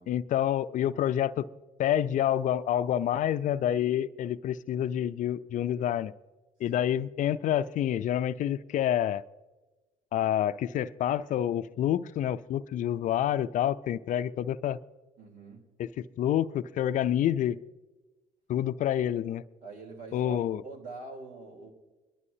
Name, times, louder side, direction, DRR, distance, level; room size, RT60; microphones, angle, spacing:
voice 1, 0.1-1.4 1.8-6.1 6.6-9.2 10.1-14.8 16.2-17.6 18.5-19.4 20.1-20.6, left 11 dB, 55° left, 14 dB, 0.5 m, -28 dB
voice 2, 15.2-15.6 19.6-21.7, right 3 dB, 65° right, 2 dB, 3.5 m, -45 dB
22.5 x 12.0 x 2.8 m, 1.2 s
hypercardioid pair, 65°, 15 cm